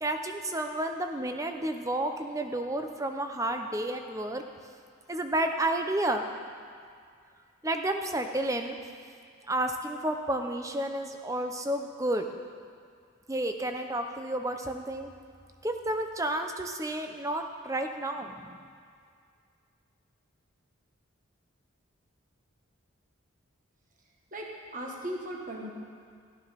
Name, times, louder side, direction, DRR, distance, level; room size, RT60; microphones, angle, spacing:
voice 1, 0.0-4.4 5.1-6.3 7.6-8.8 9.5-12.3 13.3-15.1 15.6-18.6, right 1 dB, 15° right, 6 dB, 0.8 m, -31 dB
voice 2, 24.3-25.7, right 1 dB, 40° right, -1 dB, 1.6 m, -37 dB
13.5 x 12.0 x 5.9 m, 2.2 s
head